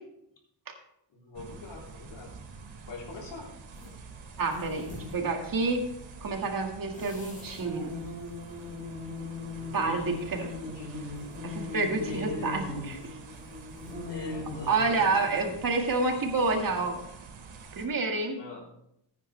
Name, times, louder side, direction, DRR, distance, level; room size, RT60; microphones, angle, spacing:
voice 1, 1.1-2.3 2.9-3.5 9.6-10.9 12.0-12.6 14.0-15.1 18.4-18.7, left 3 dB, 70° left, -2 dB, 3.8 m, -43 dB
sound 1, 1.3-17.9, right 4 dB, 90° right, 2.5 m, -47 dB
sound 2, 3.7-3.9 4.4-5.2 6.9-15.3, left 2 dB, 15° left, 5.2 m, -39 dB
voice 2, 4.4-5.9 6.2-7.9 9.7-10.5 11.4-13.2 14.7-17.0 17.8-18.4, right 3 dB, 45° right, 3 dB, 1.9 m, -29 dB
14.5 x 9.4 x 3.3 m, 0.77 s
wide cardioid pair, 130°, 46 cm